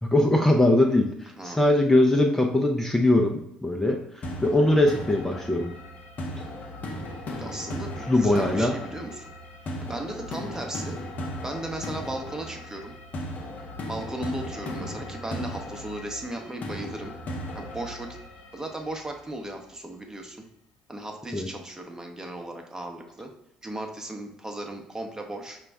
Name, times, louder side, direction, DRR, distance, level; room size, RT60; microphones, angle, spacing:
voice 1, 0.0-5.7 8.1-8.8 21.3-21.5, left 1 dB, 10° left, 2 dB, 0.5 m, -21 dB
sound 1, 4.2-19.2, left 1 dB, 50° left, 0.8 m, -37 dB
voice 2, 7.3-9.3 9.8-11.0 11.4-12.9 13.9-17.1 17.5-18.2 18.5-20.5 20.9-23.3 23.6-25.6, right 1 dB, 20° right, 3 dB, 0.8 m, -36 dB
5.0 x 2.3 x 3.4 m, 0.80 s
hypercardioid pair, 55°, 3 cm